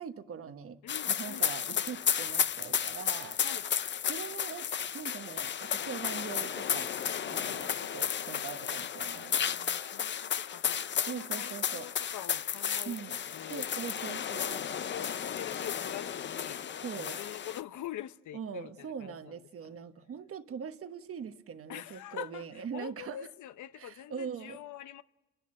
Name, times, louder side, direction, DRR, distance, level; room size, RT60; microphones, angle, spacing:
voice 1, 0.0-0.8 1.1-3.4 4.1-7.0 7.3-9.4 11.1-11.9 12.8-13.2 13.5-14.6 16.8-17.2 18.3-23.2 23.7-24.6, right 7 dB, 50° right, 1.2 m, -42 dB
voice 2, 0.8-1.8 3.4-3.7 7.4-7.6 9.1-13.0 13.3-13.7 14.5-19.4 19.6-19.7 21.7-25.0, left 12 dB, 75° left, 0.9 m, -45 dB
sound 1, 0.9-17.6, left 8 dB, 40° left, 0.6 m, -33 dB
30.0 x 11.5 x 7.6 m
cardioid pair, 90°, 30 cm